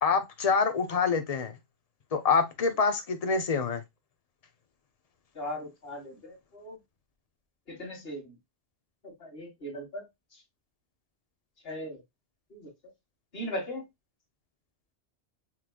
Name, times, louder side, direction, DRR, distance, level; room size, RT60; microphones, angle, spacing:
voice 1, 0.0-1.5 2.1-3.8, left 5 dB, 40° left, 0.8 m, -26 dB
voice 2, 5.3-6.8 7.7-8.4 9.0-10.0 10.3-10.4 11.6-12.0 12.5-12.7 13.3-13.8, equal, 60° left, 2.1 m, -38 dB
5.8 x 3.2 x 2.2 m
omnidirectional pair, 1.2 m